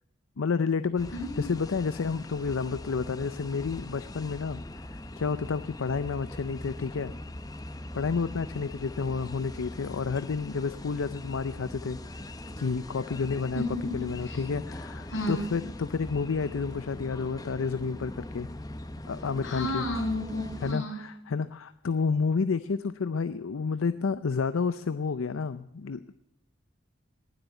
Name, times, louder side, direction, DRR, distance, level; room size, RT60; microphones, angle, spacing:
voice 1, 0.4-1.1 1.4-4.6 4.9-7.1 7.9-12.0 12.6-13.6 13.9-18.5 19.1-19.8 20.6-26.2, left 5 dB, 90° left, 13 dB, 0.5 m, -30 dB
sound 1, 1.0-20.7, left 1 dB, 20° left, 0.7 m, -41 dB
voice 2, 1.1-1.5 13.5-14.4 15.1-15.4 19.4-21.0, left 1 dB, 70° left, -2 dB, 7.7 m, -32 dB
19.5 x 8.1 x 9.1 m, 0.81 s
head